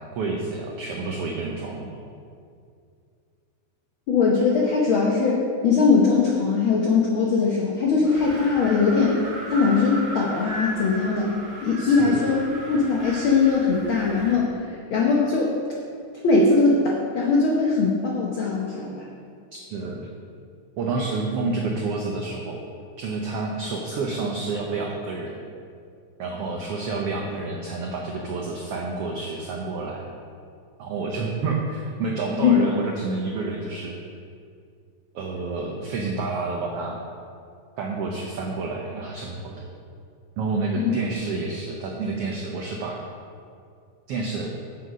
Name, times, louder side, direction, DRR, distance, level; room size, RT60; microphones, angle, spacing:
voice 1, 0.0-1.9 11.8-12.3 19.5-20.1 20.8-22.6 23.0-25.4 26.2-30.1 30.8-33.9 35.1-37.0 37.8-39.6 40.4-43.0 44.1-44.5, right 3 dB, 75° right, 0 dB, 1.3 m, -29 dB
voice 2, 4.1-9.2 9.5-11.3 11.6-15.6 16.2-19.0 32.4-32.6 40.8-40.9, left 4 dB, 80° left, -3 dB, 1.1 m, -21 dB
Wind, 8.0-14.5, right 1 dB, 45° right, 2.8 m, -36 dB
7.9 x 7.6 x 5.2 m, 2.3 s
omnidirectional pair, 3.6 m